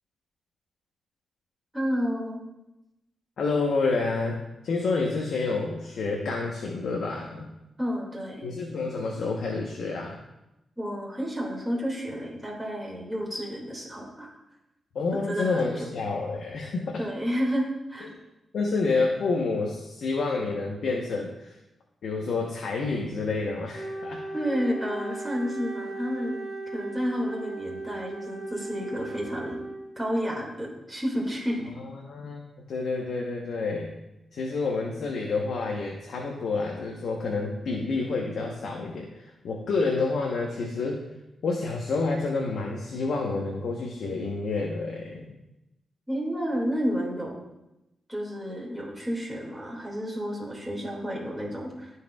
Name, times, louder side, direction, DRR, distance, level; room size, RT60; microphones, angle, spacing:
voice 1, 1.7-2.4 7.8-8.5 10.8-14.3 15.1-15.9 17.0-18.1 24.3-29.6 30.0-31.6 46.1-47.4 48.1-51.9, equal, 5° right, -3 dB, 2.3 m, -31 dB
voice 2, 3.4-4.4 4.6-7.5 8.4-10.2 14.9-17.0 18.0-18.2 18.5-21.5 22.0-24.2 31.8-33.9 34.3-41.0 41.4-45.3, left 3 dB, 75° left, -1 dB, 1.0 m, -29 dB
Wind instrument woodwind instrument, 23.7-30.1, right 2 dB, 25° right, 1.5 m, -37 dB
14.0 x 4.7 x 2.4 m, 0.94 s
cardioid pair, 60°, 0 cm